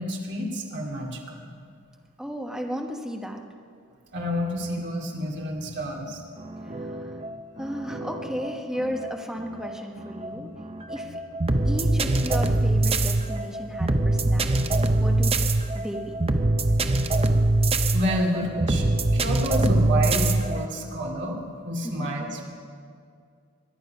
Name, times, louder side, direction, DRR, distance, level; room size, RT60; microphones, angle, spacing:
voice 1, 0.0-1.4 4.1-6.2 10.3-10.4 11.0-11.1 17.2-17.3 17.9-21.4 21.6-22.5, equal, 55° right, -1 dB, 2.5 m, -29 dB
voice 2, 2.2-3.4 6.6-7.2 7.6-10.5 10.9-11.2 11.6-15.4 15.7-16.2 19.6-19.9 21.8-22.1, equal, 5° right, 1 dB, 1.1 m, -34 dB
sound 1, 6.4-20.7, right 2 dB, 25° right, 0.6 m, -24 dB
23.0 x 9.8 x 5.8 m, 2.3 s
head